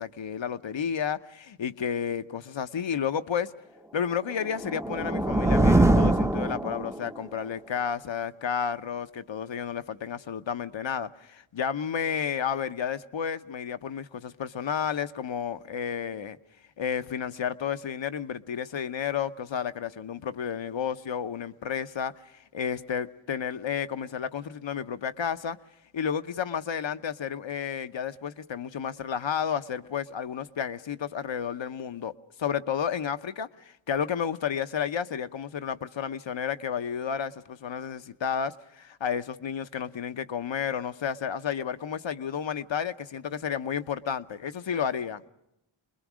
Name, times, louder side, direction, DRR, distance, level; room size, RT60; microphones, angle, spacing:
voice 1, 0.0-3.5 3.9-16.4 16.8-25.6 25.9-32.1 32.4-45.2, left 7 dB, 60° left, 0.9 m, -31 dB
sound 1, 4.4-7.2, right 1 dB, 5° right, 0.7 m, -23 dB
26.5 x 21.0 x 6.2 m
cardioid pair, 50°, 50 cm